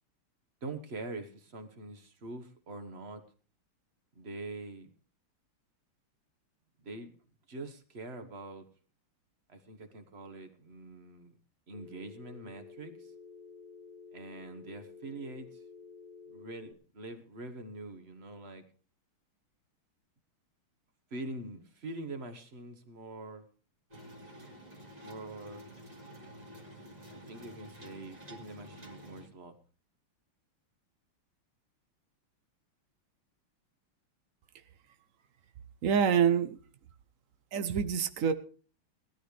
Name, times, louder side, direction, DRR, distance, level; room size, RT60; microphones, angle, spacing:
voice 1, 0.6-3.2 4.1-4.9 6.8-7.1 7.5-8.7 9.5-11.3 11.7-13.1 14.1-15.6 16.3-18.7 21.1-23.5 25.0-25.7 27.1-29.6, right 2 dB, 35° right, 8 dB, 1.3 m, -44 dB
Telephone, 11.7-16.7, left 5 dB, 80° left, 1.8 m, -51 dB
sound 1, 23.9-29.3, equal, 20° right, 2.1 m, -50 dB
voice 2, 35.8-36.6 37.5-38.3, right 7 dB, 90° right, 9 dB, 0.7 m, -26 dB
18.5 x 13.0 x 3.3 m, 0.39 s
omnidirectional pair, 2.4 m